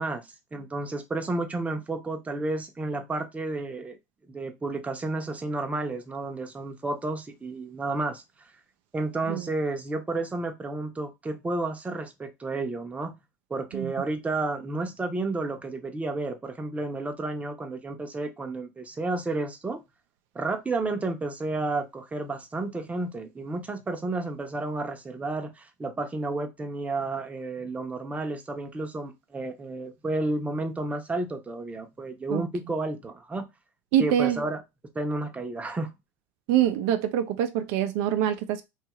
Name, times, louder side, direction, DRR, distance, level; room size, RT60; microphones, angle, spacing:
voice 1, 0.0-4.0 4.3-8.2 8.9-13.1 13.5-19.8 20.3-33.4 34.0-34.6 34.9-35.9, right 2 dB, 15° right, 0.7 m, -31 dB
voice 2, 33.9-34.4 36.5-38.6, right 10 dB, 70° right, 0.4 m, -25 dB
2.7 x 2.4 x 2.8 m
hypercardioid pair, 90°, 8 cm